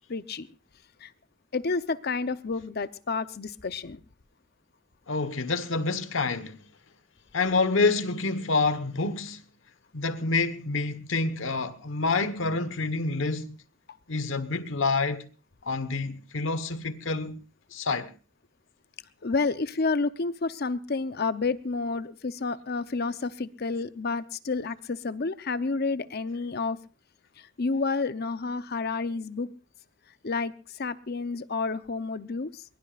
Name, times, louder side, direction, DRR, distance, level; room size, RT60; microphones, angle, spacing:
voice 1, 0.1-0.5 1.0-1.1 1.5-4.0 19.2-26.8 27.4-29.5 30.2-32.6, left 4 dB, 55° left, 0.8 m, -30 dB
voice 2, 5.1-6.6 7.3-9.4 9.9-13.6 14.1-15.3 15.6-17.4 17.7-18.1, left 3 dB, 85° left, 1.3 m, -27 dB
22.5 x 22.0 x 2.5 m
head